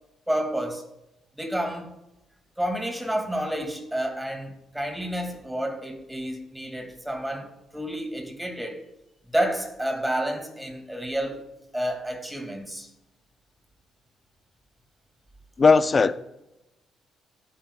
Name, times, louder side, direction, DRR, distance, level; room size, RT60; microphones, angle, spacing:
voice 1, 0.3-0.9 1.4-2.0 2.6-8.8 9.3-11.4 11.7-12.9, right 1 dB, 5° right, 2.2 m, -30 dB
voice 2, 15.6-16.3, left 4 dB, 35° left, 0.5 m, -18 dB
17.5 x 8.9 x 2.3 m
cardioid pair, 90°, 0 cm